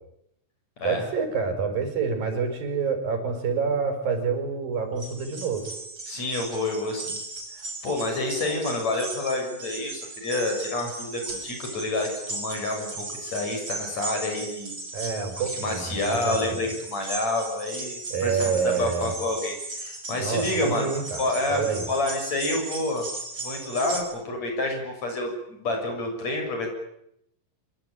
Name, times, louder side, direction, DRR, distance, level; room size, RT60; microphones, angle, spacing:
voice 1, 0.8-5.7 14.9-16.5 18.1-19.1 20.2-21.9, right 5 dB, 90° right, 7 dB, 6.5 m, -27 dB
sound 1, 5.0-24.0, right 2 dB, 35° right, 6.8 m, -37 dB
voice 2, 6.1-7.2 7.5-14.8 15.3-20.9 21.2-23.1 23.4-26.7, left 2 dB, 50° left, 4 dB, 8.3 m, -29 dB
25.5 x 24.5 x 9.2 m, 0.79 s
omnidirectional pair, 3.9 m